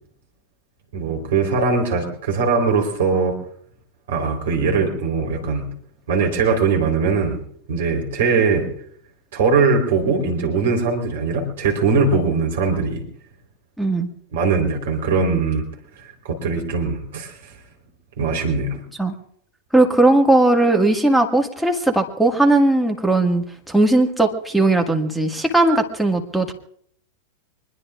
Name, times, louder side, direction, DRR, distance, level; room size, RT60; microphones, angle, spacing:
voice 1, 0.9-3.4 4.1-5.7 6.1-7.4 7.7-8.7 9.3-13.0 14.3-15.7 16.2-17.5 18.2-18.8, right 4 dB, 60° right, 2 dB, 4.0 m, -20 dB
voice 2, 13.8-14.1 19.0-19.1 19.7-26.5, right 2 dB, ahead, 1 dB, 2.0 m, -18 dB
24.5 x 21.0 x 2.5 m, 0.66 s
figure-of-eight pair, 90°, 0 cm